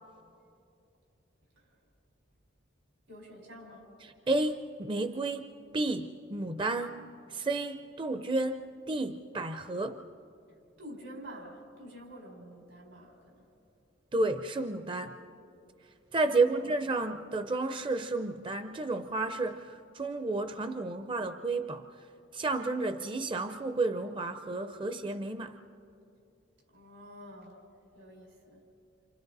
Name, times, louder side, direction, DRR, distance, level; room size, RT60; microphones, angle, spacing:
voice 1, 3.1-4.0 10.8-13.4 16.1-16.6 26.7-27.6 27.9-28.6, equal, 90° right, 0 dB, 5.0 m, -48 dB
voice 2, 4.0-10.0 14.1-15.2 16.1-21.9 22.3-25.6, right 2 dB, 25° right, 9 dB, 0.5 m, -32 dB
29.0 x 27.5 x 4.0 m, 2.7 s
head